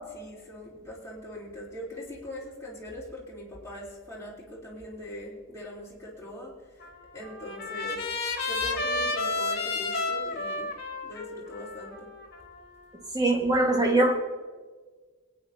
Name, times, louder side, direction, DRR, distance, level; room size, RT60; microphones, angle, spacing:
voice 1, 0.0-6.5 7.1-8.0 8.5-10.7 11.0-12.1, equal, 15° left, -6 dB, 3.7 m, -41 dB
Trumpet, 6.8-13.0, left 3 dB, 50° left, 2.0 m, -32 dB
voice 2, 13.1-14.2, right 2 dB, 20° right, 0 dB, 1.8 m, -22 dB
23.0 x 9.5 x 2.8 m, 1.4 s
head